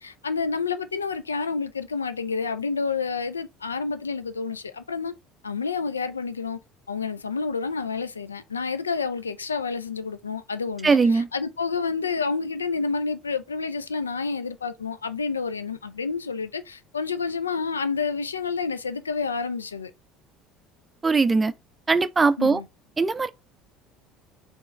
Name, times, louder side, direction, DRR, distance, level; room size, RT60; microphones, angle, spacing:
voice 1, 0.0-5.1 5.4-6.6 6.9-19.9 22.4-22.7, left 5 dB, 85° left, 0.3 m, -29 dB
voice 2, 10.8-11.3 21.0-21.5 21.9-22.6 23.0-23.3, right 4 dB, 20° right, 0.4 m, -20 dB
4.5 x 2.9 x 3.2 m
figure-of-eight pair, 60°, 0 cm